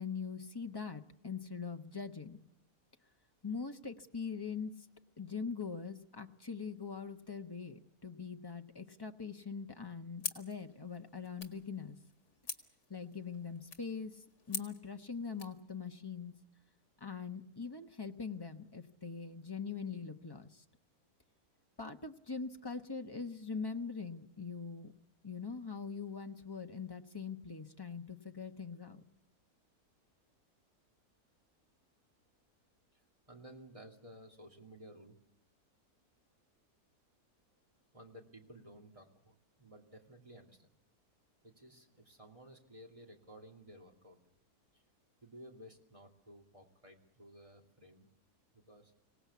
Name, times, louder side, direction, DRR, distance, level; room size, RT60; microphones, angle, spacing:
voice 1, 0.0-2.4 3.4-4.7 5.2-12.0 12.9-16.3 17.0-20.6 21.8-24.9 25.2-29.0, left 5 dB, 20° left, 5 dB, 1.0 m, -42 dB
sound 1, 10.2-15.6, left 5 dB, 85° left, 2.5 m, -46 dB
voice 2, 33.3-35.2 37.9-40.7 41.4-44.2 44.7-44.8 45.2-48.1 48.5-48.9, equal, 20° right, 1 dB, 2.7 m, -55 dB
25.5 x 18.0 x 8.4 m, 0.78 s
omnidirectional pair, 1.6 m